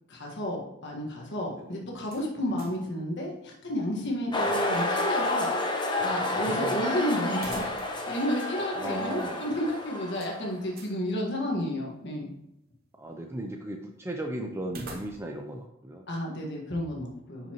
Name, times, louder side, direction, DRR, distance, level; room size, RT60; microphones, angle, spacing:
voice 1, 0.1-5.7 6.0-7.7 8.1-12.3 16.1-17.5, left 1 dB, 55° left, -1 dB, 1.6 m, -31 dB
voice 2, 1.5-1.9 4.2-4.6 6.3-6.8 8.7-9.4 13.0-16.0, right 1 dB, 10° right, 2 dB, 0.5 m, -37 dB
sound 1, 2.0-2.9 3.2-3.3 7.3-8.2 8.5-8.6 10.2-11.0 14.6-15.5, right 2 dB, 45° right, 0.9 m, -44 dB
sound 2, 4.3-10.6, left 2 dB, 20° left, 1.0 m, -30 dB
10.5 x 5.5 x 3.0 m, 0.84 s
head